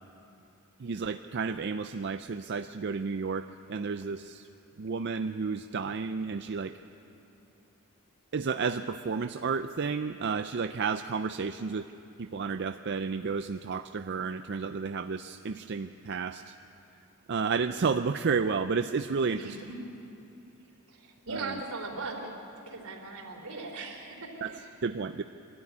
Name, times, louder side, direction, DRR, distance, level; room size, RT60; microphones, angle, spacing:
voice 1, 0.8-4.5 4.8-6.8 8.3-11.9 12.2-16.5 17.3-19.6 21.3-21.6 24.4-25.2, right 5 dB, 50° right, 9 dB, 0.5 m, -31 dB
voice 2, 19.3-19.8 20.9-24.7, right 3 dB, 75° right, 2 dB, 3.5 m, -39 dB
24.0 x 13.5 x 9.6 m, 2.9 s
head